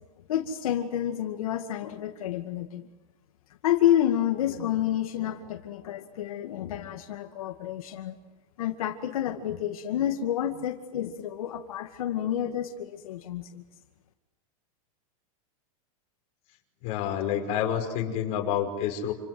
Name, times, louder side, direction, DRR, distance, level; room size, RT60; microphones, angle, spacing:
voice 1, 0.3-2.9 3.6-8.2 8.6-13.6, left 11 dB, 80° left, 4 dB, 2.2 m, -29 dB
voice 2, 16.8-19.1, left 9 dB, 35° left, 2 dB, 5.5 m, -28 dB
28.5 x 26.5 x 7.8 m, 1.1 s
supercardioid pair, 165°, 18 cm